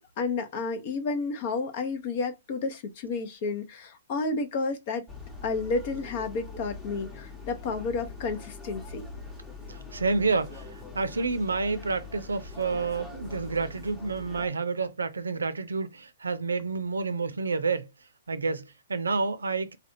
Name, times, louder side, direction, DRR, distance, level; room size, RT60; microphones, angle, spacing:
voice 1, 0.2-5.0 5.4-9.0, left 4 dB, 45° left, 0.7 m, -31 dB
sound 1, 5.1-14.5, left 3 dB, 10° left, 0.9 m, -43 dB
voice 2, 9.7-17.9 18.3-19.8, right 4 dB, 80° right, 0.5 m, -29 dB
3.4 x 2.3 x 2.7 m
figure-of-eight pair, 120°, 0 cm